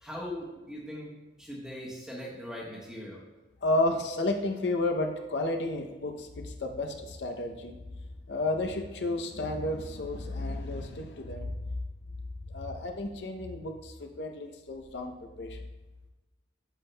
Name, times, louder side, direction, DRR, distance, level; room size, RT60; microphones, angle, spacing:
voice 1, 0.0-1.1 1.4-3.2, left 1 dB, 5° right, -5 dB, 1.1 m, -40 dB
voice 2, 3.6-7.8 8.3-11.6 12.5-15.6, left 2 dB, 70° left, 4 dB, 0.6 m, -32 dB
9.1 x 7.2 x 2.2 m, 1.1 s
head